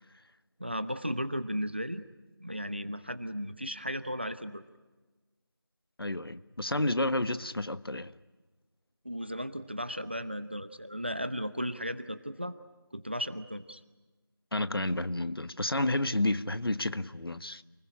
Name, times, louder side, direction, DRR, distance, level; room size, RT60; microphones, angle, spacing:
voice 1, 0.6-2.0 2.4-4.6 9.0-12.6 12.9-13.8, equal, 25° right, 0.9 m, -35 dB
voice 2, 6.0-8.1 14.5-17.6, left 1 dB, 75° left, 1.2 m, -30 dB
29.0 x 20.0 x 9.9 m
figure-of-eight pair, 180°, 13 cm